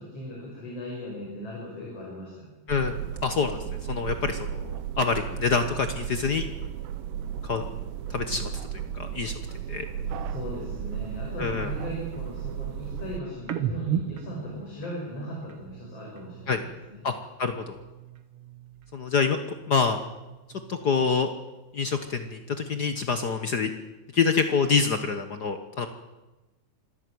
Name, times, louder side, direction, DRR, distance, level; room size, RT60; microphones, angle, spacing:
voice 1, 0.0-2.5 10.2-17.0, equal, 50° left, -2 dB, 6.4 m, -38 dB
voice 2, 2.7-3.6 3.9-6.4 7.4-7.6 8.1-9.3 9.7-9.8 11.4-11.7 16.5-16.6 17.0-17.1 17.4-17.8 18.9-19.4 19.7-20.0 20.7-21.3 21.7-23.7 24.1-25.9, left 5 dB, 70° left, 8 dB, 0.9 m, -26 dB
sound 1, 2.7-13.2, right 9 dB, 85° right, 2.8 m, -35 dB
sound 2, 13.4-17.0 17.3-19.2 19.4-21.3 21.7-23.5, right 8 dB, 55° right, 2.0 m, -38 dB
26.0 x 13.0 x 9.5 m, 1.1 s
omnidirectional pair, 3.6 m